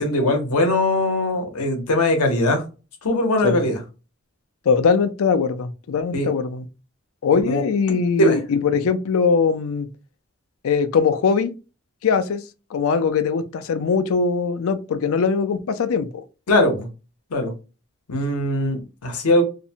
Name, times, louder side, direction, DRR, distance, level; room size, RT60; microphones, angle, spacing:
voice 1, 0.0-2.6 3.0-3.8 6.1-6.3 7.5-7.6 8.2-8.4 16.5-16.9 17.3-17.5 18.1-19.4, left 1 dB, 90° left, 0.7 m, -20 dB
voice 2, 4.7-6.7 7.2-9.9 10.6-11.5 12.0-12.4 12.7-16.1, left 5 dB, 65° left, 0.4 m, -21 dB
2.6 x 2.1 x 2.7 m
head